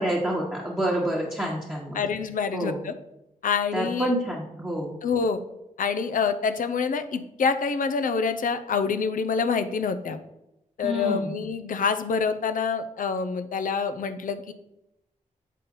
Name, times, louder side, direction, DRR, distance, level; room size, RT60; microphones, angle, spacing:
voice 1, 0.0-2.0 2.5-2.8 3.7-4.9 10.8-11.3, right 1 dB, 10° right, -6 dB, 1.2 m, -27 dB
voice 2, 1.9-2.9 3.4-4.1 5.0-5.4 5.8-10.2 10.8-14.5, left 5 dB, 70° left, 10 dB, 0.6 m, -26 dB
7.3 x 4.1 x 3.8 m, 0.88 s
cardioid pair, 75°, 14 cm